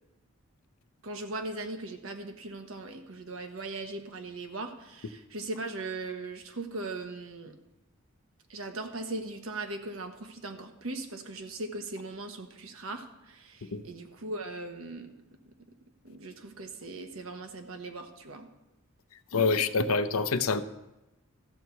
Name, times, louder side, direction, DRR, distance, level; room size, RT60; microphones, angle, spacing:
voice 1, 1.0-7.6 8.5-15.5 16.0-18.5, right 2 dB, 75° right, 6 dB, 1.2 m, -39 dB
voice 2, 19.3-20.6, left 4 dB, 90° left, 12 dB, 0.6 m, -26 dB
14.0 x 4.7 x 7.0 m, 0.96 s
head